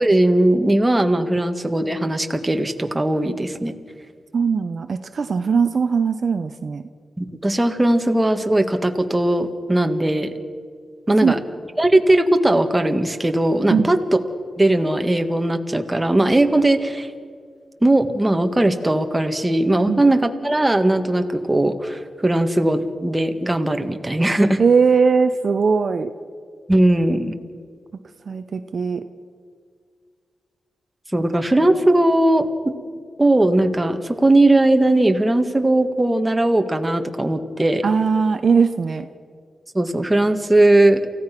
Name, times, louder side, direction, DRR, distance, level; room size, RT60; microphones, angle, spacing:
voice 1, 0.0-3.7 7.2-10.3 11.1-11.4 11.8-14.0 14.6-17.1 17.8-24.6 26.7-27.4 31.1-32.7 33.2-37.8 39.8-41.0, right 1 dB, 15° right, 6 dB, 1.7 m, -18 dB
voice 2, 4.3-6.8 11.1-11.3 13.7-14.0 19.9-20.0 24.6-26.1 28.3-29.0 37.8-39.1, right 5 dB, 60° right, 9 dB, 0.8 m, -19 dB
28.5 x 16.0 x 6.0 m, 2.1 s
cardioid pair, 75°, 0 cm